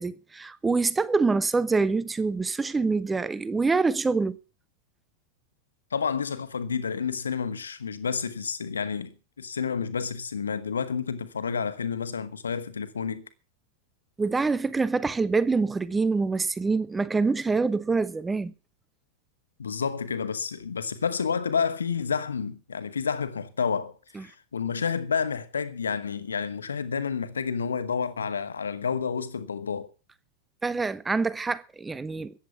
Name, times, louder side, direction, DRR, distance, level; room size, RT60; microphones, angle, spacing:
voice 1, 0.0-4.4 14.2-18.5 24.2-24.3 30.6-32.3, right 4 dB, 10° right, 1.0 m, -25 dB
voice 2, 5.9-13.2 19.6-29.9, left 6 dB, 70° left, 1.5 m, -30 dB
14.5 x 10.0 x 6.9 m
figure-of-eight pair, 90°, 0 cm